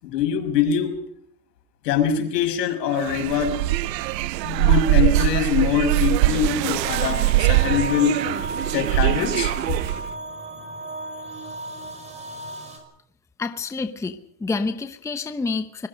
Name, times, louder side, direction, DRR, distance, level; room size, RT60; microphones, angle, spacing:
voice 1, 0.0-1.0 1.8-3.6 4.4-8.2 8.7-9.5, left 8 dB, 75° left, 6 dB, 6.1 m, -23 dB
sound 1, 2.9-10.1, right 17 dB, 85° right, 1.0 m, -22 dB
sound 2, 6.8-12.8, right 1 dB, 15° right, 5.4 m, -34 dB
voice 2, 13.4-15.9, left 4 dB, 5° left, 9 dB, 0.9 m, -28 dB
26.5 x 21.5 x 5.3 m, 0.70 s
supercardioid pair, 150°, 49 cm